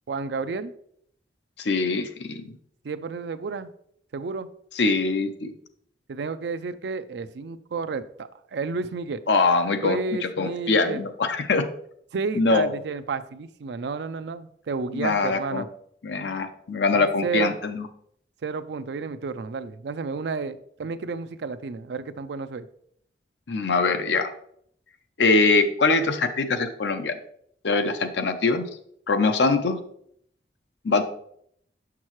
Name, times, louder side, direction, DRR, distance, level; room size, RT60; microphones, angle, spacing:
voice 1, 0.1-0.7 2.8-3.7 4.1-4.5 6.1-9.2 9.8-11.1 12.1-15.7 16.9-17.6 18.4-22.7, right 4 dB, 75° right, 12 dB, 0.4 m, -31 dB
voice 2, 1.6-2.6 4.8-5.5 9.3-11.7 12.3-12.7 14.9-15.7 16.0-17.9 23.5-24.3 25.2-27.2 27.6-28.7 29.1-29.8 30.8-31.0, left 3 dB, 80° left, 8 dB, 0.6 m, -23 dB
6.4 x 5.9 x 3.1 m, 0.68 s
head